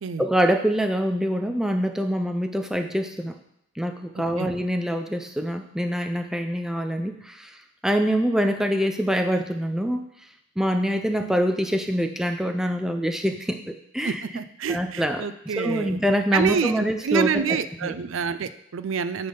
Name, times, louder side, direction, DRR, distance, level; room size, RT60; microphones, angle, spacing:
voice 1, 0.2-3.4 3.8-7.5 7.8-10.0 10.6-14.2 14.7-17.9, equal, ahead, 5 dB, 0.4 m, -25 dB
voice 2, 14.0-16.0 16.3-19.3, right 6 dB, 75° right, 12 dB, 0.4 m, -27 dB
9.2 x 3.5 x 5.4 m, 0.75 s
head